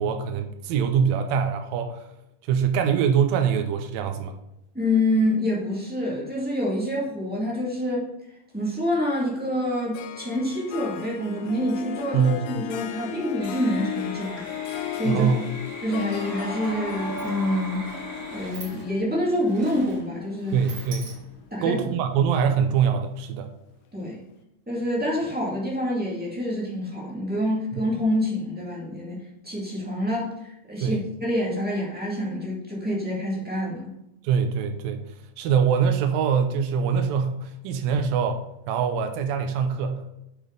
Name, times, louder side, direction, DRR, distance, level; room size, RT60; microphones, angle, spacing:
voice 1, 0.0-2.0 2.5-4.4 12.1-12.6 15.1-15.5 20.5-21.1 21.6-23.5 27.7-27.8 30.8-31.0 34.2-35.0 35.4-38.4 38.7-40.0, right 7 dB, 80° right, 6 dB, 2.4 m, -23 dB
voice 2, 4.7-8.1 8.5-14.4 14.9-15.3 15.8-17.8 18.3-20.6 21.5-21.8 23.9-24.2 24.7-29.2 29.4-33.9, left 1 dB, 15° right, -5 dB, 0.3 m, -27 dB
Harp, 9.9-21.4, left 10 dB, 80° left, 2.2 m, -36 dB
sound 1, 13.4-18.5, equal, 30° right, 1.2 m, -37 dB
Sliding door, 16.3-16.4 16.7-21.6, right 3 dB, 50° right, 1.9 m, -45 dB
8.2 x 5.2 x 3.8 m, 0.86 s
omnidirectional pair, 4.2 m